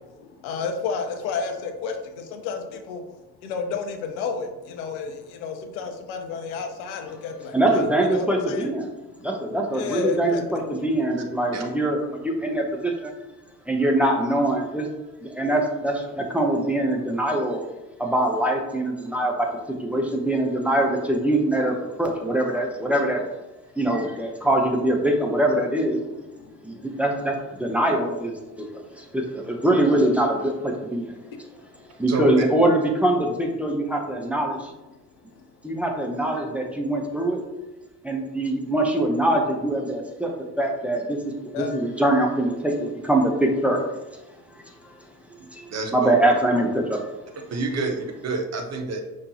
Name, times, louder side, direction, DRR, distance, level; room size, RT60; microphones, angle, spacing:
voice 1, 0.0-3.0 3.4-8.7 9.7-10.4 10.8-10.9 26.0-26.8 31.8-31.9 35.4-35.5 41.5-41.7, left 5 dB, 60° left, 5 dB, 0.7 m, -32 dB
voice 2, 7.5-8.9 9.2-13.1 13.7-14.9 15.2-17.6 18.0-19.5 19.8-23.2 23.8-26.0 26.6-31.2 32.0-34.7 35.6-37.4 38.0-40.3 40.6-43.8 45.5-47.0, right 1 dB, 5° right, 0 dB, 0.7 m, -23 dB
voice 3, 45.7-46.2 47.5-49.0, right 3 dB, 35° right, 3 dB, 0.7 m, -28 dB
5.2 x 3.1 x 2.7 m, 1.0 s
figure-of-eight pair, 55°, 49 cm